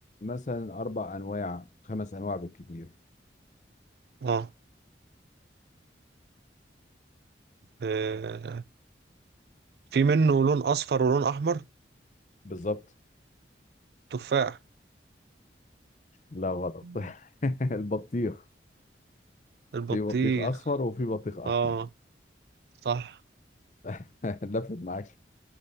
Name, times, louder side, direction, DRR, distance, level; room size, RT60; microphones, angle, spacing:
voice 1, 0.2-2.9 12.4-12.8 16.3-18.4 19.9-21.7 23.8-25.2, left 2 dB, 40° left, 0.6 m, -33 dB
voice 2, 7.8-8.6 9.9-11.6 14.1-14.6 16.8-17.1 19.7-20.5 21.5-21.9 22.8-23.2, right 5 dB, 60° right, 0.3 m, -26 dB
9.7 x 5.2 x 2.6 m
head